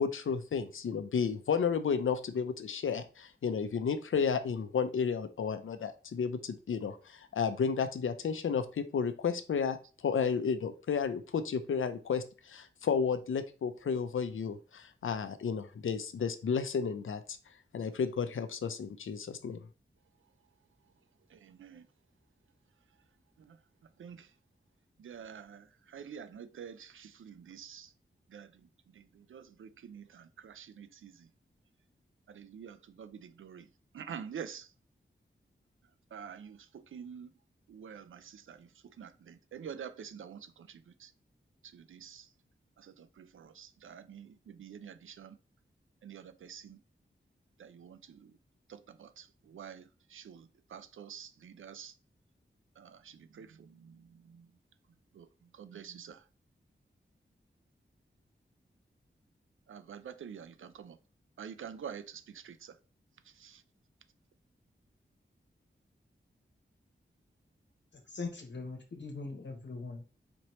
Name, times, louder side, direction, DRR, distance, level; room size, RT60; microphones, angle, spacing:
voice 1, 0.0-9.8 10.0-17.4 17.7-19.6, left 6 dB, 80° left, 0.5 m, -32 dB
voice 2, 21.3-21.9 23.4-23.6 24.0-24.3 25.0-27.9 28.3-28.5 28.9-31.3 32.3-33.7 33.9-34.7 36.1-37.3 37.7-41.1 41.7-42.3 42.8-45.4 46.0-46.8 47.6-48.3 48.7-51.9 52.8-54.5 55.1-55.3 55.5-56.2 59.7-61.0 61.4-62.8 63.4-63.6, right 7 dB, 80° right, 0.4 m, -48 dB
voice 3, 68.1-70.1, left 3 dB, 60° left, 1.1 m, -41 dB
4.3 x 2.9 x 3.1 m
wide cardioid pair, 65°, 20 cm